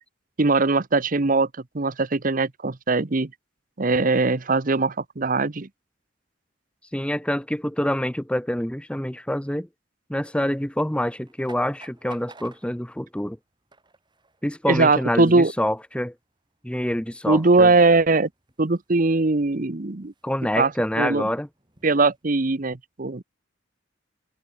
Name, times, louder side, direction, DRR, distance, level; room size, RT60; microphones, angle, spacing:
voice 1, 0.4-1.5 1.7-3.3 3.8-5.7 14.7-15.5 17.3-18.3 18.6-20.1 20.6-20.7 21.0-21.2 21.8-23.2, right 3 dB, 45° right, 0.9 m, -20 dB
voice 2, 6.9-9.7 10.1-13.4 14.4-16.1 16.6-17.7 20.2-21.5, left 1 dB, 5° left, 1.2 m, -26 dB
sound 1, 11.1-22.2, right 3 dB, 25° right, 7.0 m, -56 dB
open air
head